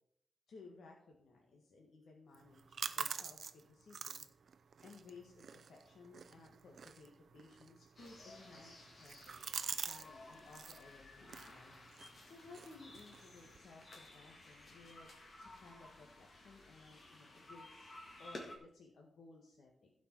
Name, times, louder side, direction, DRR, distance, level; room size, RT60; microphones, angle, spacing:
voice 1, 0.5-3.4 3.7-4.3 4.8-11.7 12.2-15.1 15.4-17.9 18.2-19.9, left 3 dB, 85° left, 0 dB, 1.6 m, -59 dB
sound 1, 2.3-10.1 10.3-10.8 11.2-13.6, right 6 dB, 60° right, 0.5 m, -47 dB
sound 2, 8.0-18.6, left 2 dB, 40° left, 1.9 m, -55 dB
15.5 x 5.2 x 4.6 m, 0.69 s
wide cardioid pair, 170°, 0 cm